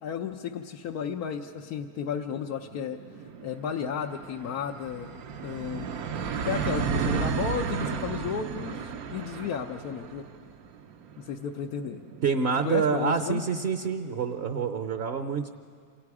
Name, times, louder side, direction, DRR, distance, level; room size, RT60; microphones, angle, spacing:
voice 1, 0.0-3.0 3.4-5.1 5.4-5.9 6.4-10.2 11.2-12.0 12.6-13.4, left 7 dB, 85° left, 2 dB, 1.3 m, -33 dB
sound 1, 1.6-1.7 1.9-13.3, right 6 dB, 75° right, 1.3 m, -34 dB
voice 2, 12.2-15.5, right 6 dB, 50° right, 7 dB, 0.9 m, -27 dB
28.5 x 27.0 x 4.8 m, 2.1 s
omnidirectional pair, 1.6 m